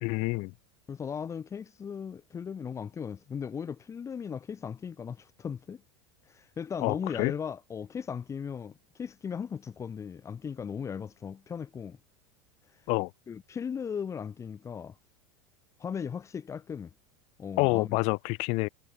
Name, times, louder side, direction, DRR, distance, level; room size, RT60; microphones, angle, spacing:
voice 1, 0.0-0.5 6.8-7.3 12.9-13.1 17.6-18.7, left 28 dB, 55° left, 1.2 m, -27 dB
voice 2, 0.9-5.8 6.3-12.0 13.3-14.9 15.8-16.9 17.4-18.0, left 7 dB, 20° left, 3.1 m, -37 dB
supercardioid pair, 130°, 13 cm